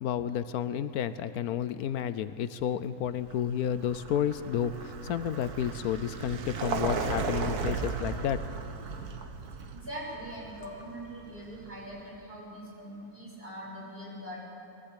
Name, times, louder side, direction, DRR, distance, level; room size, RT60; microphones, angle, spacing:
voice 1, 0.0-8.4, left 9 dB, 80° left, 13 dB, 1.1 m, -31 dB
Vehicle, 3.2-12.0, right 5 dB, 85° right, 1.7 m, -36 dB
voice 2, 9.7-14.4, equal, 40° right, -5 dB, 6.6 m, -42 dB
21.5 x 15.0 x 8.3 m, 2.9 s
omnidirectional pair, 1.6 m